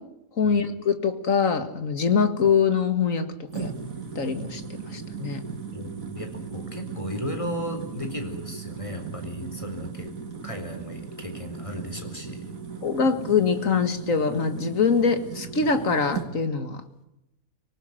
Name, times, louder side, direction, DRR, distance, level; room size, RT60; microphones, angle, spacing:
voice 1, 0.4-3.2 3.5-3.7 4.2-4.6 4.9-5.4 12.8-16.8, left 5 dB, 60° left, 9 dB, 2.3 m, -23 dB
sound 1, 3.5-16.3, right 6 dB, 65° right, 2.3 m, -37 dB
voice 2, 5.7-10.2 10.4-12.5, equal, 20° left, 6 dB, 4.1 m, -35 dB
25.0 x 19.0 x 8.0 m, 0.86 s
omnidirectional pair, 1.6 m